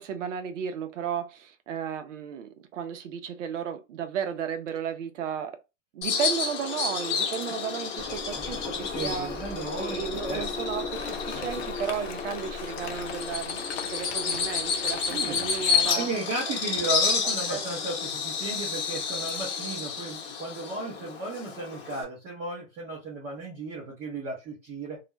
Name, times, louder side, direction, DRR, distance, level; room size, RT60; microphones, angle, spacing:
voice 1, 0.0-5.6 5.9-9.3 9.7-16.1 16.5-16.6 17.5-17.6, right 8 dB, 75° right, 0.7 m, -34 dB
Bird vocalization bird call bird song, 6.0-22.0, left 6 dB, 35° left, 1.0 m, -30 dB
Engine, 8.0-13.5, left 3 dB, 10° left, 0.6 m, -41 dB
voice 2, 8.9-10.5 15.1-15.5 15.8-25.0, right 3 dB, 25° right, 0.7 m, -35 dB
Rain, 10.9-15.9, left 6 dB, 55° left, 0.6 m, -41 dB
2.4 x 2.2 x 2.9 m
hypercardioid pair, 140°, 37 cm